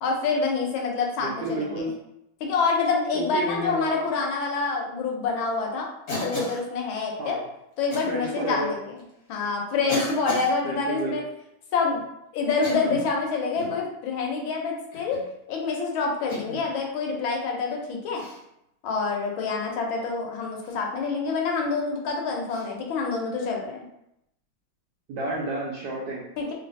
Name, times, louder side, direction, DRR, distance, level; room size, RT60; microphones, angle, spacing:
voice 1, 0.0-1.9 2.4-5.9 6.2-7.4 7.8-8.9 9.3-11.2 11.7-12.0 12.3-15.2 15.5-18.2 18.8-23.8 26.4-26.5, left 4 dB, 80° left, 0 dB, 1.4 m, -27 dB
voice 2, 1.2-2.0 3.1-4.1 7.2-7.4 8.1-8.7 10.6-11.1 25.1-26.2, right 2 dB, 75° right, -5 dB, 1.0 m, -30 dB
Cough, 6.1-6.7 7.9-8.1 9.0-9.1 9.9-10.5 12.5-13.1 13.5-13.8 14.9-15.3 16.3-16.7 18.1-18.4 20.6-20.8 22.5-22.7, left 2 dB, 55° left, 1.1 m, -33 dB
3.2 x 2.5 x 2.5 m, 0.81 s
omnidirectional pair, 2.3 m